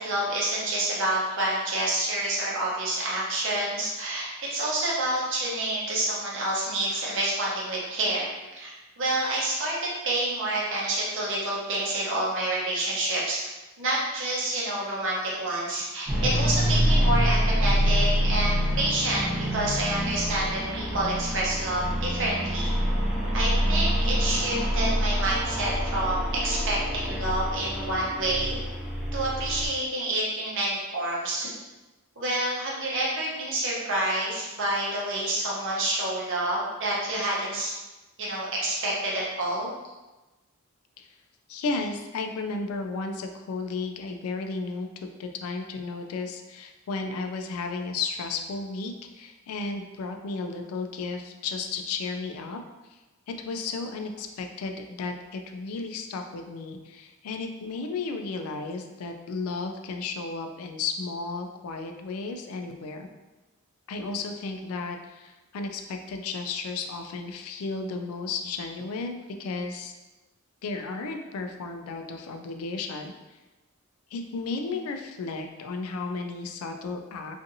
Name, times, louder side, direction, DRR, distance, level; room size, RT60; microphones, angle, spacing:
voice 1, 0.0-13.4 13.8-22.7 23.3-28.6 29.1-31.5 32.2-37.7 38.2-39.7, right 1 dB, 60° right, -5 dB, 0.8 m, -28 dB
sound 1, 16.1-29.7, equal, ahead, 0.9 m, -26 dB
voice 2, 41.5-44.9 45.2-52.6 52.9-53.0 53.3-63.1 63.9-69.9 70.6-73.1 74.1-77.4, left 4 dB, 75° left, 5 dB, 0.3 m, -33 dB
2.6 x 2.5 x 2.6 m, 1.1 s
head